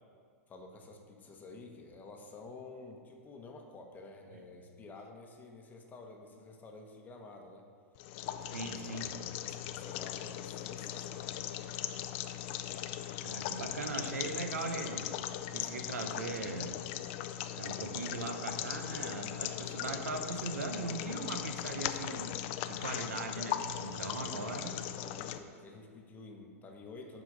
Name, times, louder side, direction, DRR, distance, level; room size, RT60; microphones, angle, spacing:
voice 1, 0.5-7.7 8.5-11.4 24.0-27.2, left 3 dB, 20° left, 2 dB, 0.9 m, -51 dB
sound 1, 7.9-25.4, left 12 dB, 50° left, 0.4 m, -39 dB
voice 2, 8.5-9.1 13.2-15.1 15.5-16.8 17.5-22.4 22.7-24.9, right 3 dB, 90° right, 6 dB, 0.7 m, -39 dB
7.9 x 4.2 x 4.9 m, 2.1 s
hypercardioid pair, 120°, 8 cm